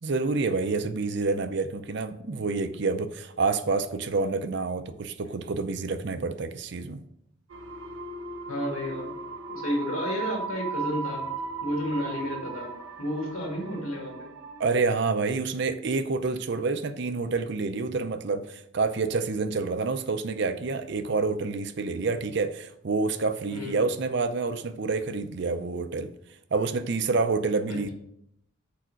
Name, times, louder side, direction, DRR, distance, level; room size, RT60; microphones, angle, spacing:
voice 1, 0.0-7.0 14.6-26.1 26.5-27.9, right 4 dB, 55° right, 0.5 m, -28 dB
sound 1, 7.5-14.8, right 4 dB, 70° right, 1.1 m, -37 dB
voice 2, 8.5-9.1 9.5-11.2 11.6-12.7 13.0-14.3 23.5-23.7 27.7-27.9, equal, 75° left, 2.1 m, -31 dB
6.7 x 4.8 x 6.2 m
head